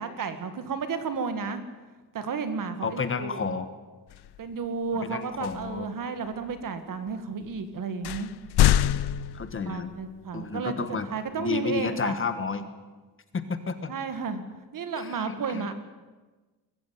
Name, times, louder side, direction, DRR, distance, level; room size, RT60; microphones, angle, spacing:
voice 1, 0.0-1.6 2.1-3.6 4.4-8.3 9.6-10.7 11.1-12.1 13.9-14.4 14.7-15.7, right 5 dB, 55° right, 9 dB, 2.0 m, -32 dB
voice 2, 2.8-3.7 5.0-5.9 9.3-9.9 10.3-12.7 13.3-13.9 14.9-15.7, left 5 dB, 30° left, 10 dB, 1.4 m, -31 dB
sound 1, 4.1-4.4 5.4-5.8 6.5-6.6 7.4-7.5 8.0-10.0, left 12 dB, 85° left, 0.7 m, -25 dB
22.0 x 14.5 x 9.4 m, 1.3 s
wide cardioid pair, 165°, 38 cm